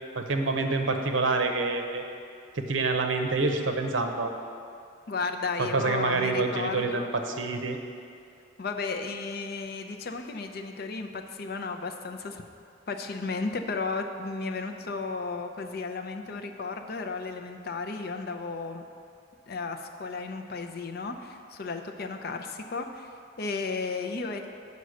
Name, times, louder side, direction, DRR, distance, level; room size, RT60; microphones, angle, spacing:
voice 1, 0.1-2.0 2.5-4.3 5.7-7.8, right 3 dB, 75° right, 5 dB, 0.7 m, -27 dB
voice 2, 5.1-7.1 8.6-12.5 12.9-18.8 19.5-23.1 23.4-24.4, left 4 dB, 55° left, 5 dB, 0.6 m, -34 dB
8.0 x 5.3 x 6.4 m, 2.4 s
head